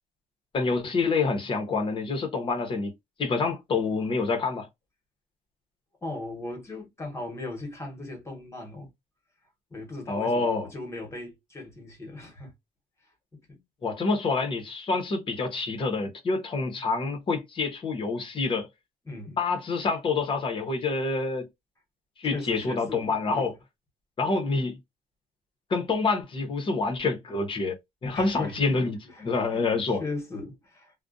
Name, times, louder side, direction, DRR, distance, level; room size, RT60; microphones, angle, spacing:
voice 1, 0.5-2.9 3.2-4.7 10.1-10.7 13.8-18.7 19.4-21.5 22.2-23.5 24.2-24.8 25.7-27.8 28.0-29.0 29.2-30.0, left 4 dB, 30° left, 0.8 m, -27 dB
voice 2, 6.0-8.9 9.7-12.5 13.3-13.6 19.0-19.4 22.3-23.5 28.1-29.7 30.0-30.9, left 2 dB, 15° left, 1.1 m, -38 dB
2.5 x 2.1 x 2.4 m
cardioid pair, 160°, 17 cm